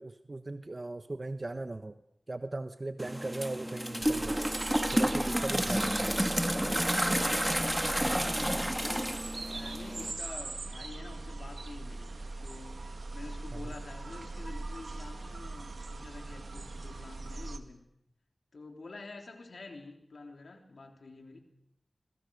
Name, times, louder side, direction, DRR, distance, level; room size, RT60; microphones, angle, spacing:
voice 1, 0.0-2.0 2.3-4.4 4.9-6.1 13.5-13.7, right 2 dB, 45° right, 9 dB, 1.0 m, -38 dB
sound 1, 3.0-10.1, equal, 10° right, 1.4 m, -30 dB
sound 2, 4.0-17.6, right 2 dB, 80° right, 1.8 m, -41 dB
voice 2, 7.9-17.9 18.5-21.4, left 3 dB, 85° left, 4 dB, 3.6 m, -48 dB
25.5 x 22.5 x 6.5 m, 0.77 s
wide cardioid pair, 55°, 0 cm